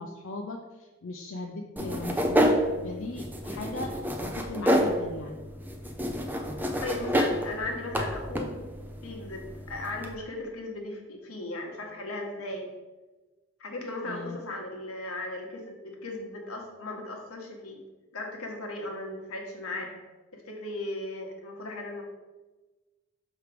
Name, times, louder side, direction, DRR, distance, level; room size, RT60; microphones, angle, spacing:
voice 1, 0.0-2.5 2.8-5.4 14.0-14.4, left 2 dB, 65° left, 2 dB, 0.5 m, -38 dB
sound 1, 1.8-10.1, equal, 10° right, 0.3 m, -29 dB
voice 2, 6.8-8.6 9.0-12.7 13.6-17.8 18.1-19.9 20.3-22.0, left 2 dB, 85° left, 1 dB, 1.2 m, -37 dB
5.8 x 3.3 x 4.9 m, 1.2 s
head